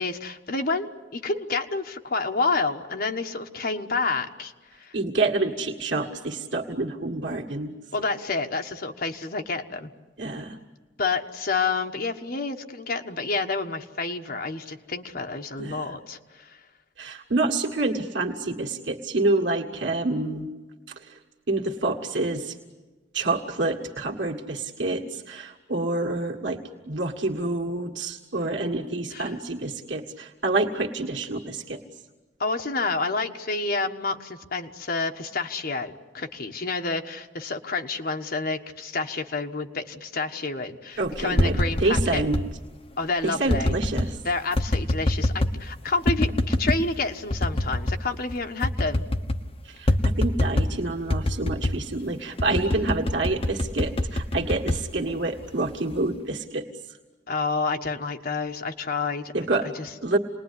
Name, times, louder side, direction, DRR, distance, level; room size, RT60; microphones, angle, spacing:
voice 1, 0.0-4.5 4.8-4.9 7.9-9.9 11.0-16.6 29.1-29.3 32.4-42.2 43.0-43.7 44.2-49.0 57.3-59.3 59.6-59.9, left 3 dB, 55° left, 4 dB, 1.4 m, -29 dB
voice 2, 4.9-7.7 10.2-10.6 15.6-16.0 17.0-20.5 21.0-21.2 21.5-22.6 23.1-26.6 26.9-31.8 41.0-42.4 43.2-44.2 49.6-56.7 59.3-59.7 60.0-60.2, right 2 dB, 80° right, 0 dB, 1.8 m, -27 dB
sound 1, 41.1-42.5 43.5-44.1 44.6-45.6 46.1-46.8 47.3-48.0 48.3-48.4 48.6-49.4 49.9-50.8 51.1-51.8 52.4-55.5 55.9-56.3, left 1 dB, 35° left, 1.2 m, -25 dB
28.0 x 20.5 x 9.9 m, 1.3 s
head